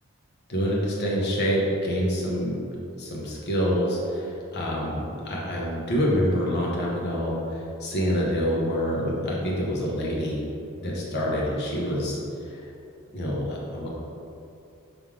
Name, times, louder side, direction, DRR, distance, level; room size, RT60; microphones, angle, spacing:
voice 1, 0.5-2.6 3.0-10.5 10.8-12.2 12.5-12.6 13.1-13.9, equal, 50° left, -4 dB, 1.0 m, -26 dB
5.3 x 3.8 x 4.8 m, 2.6 s
head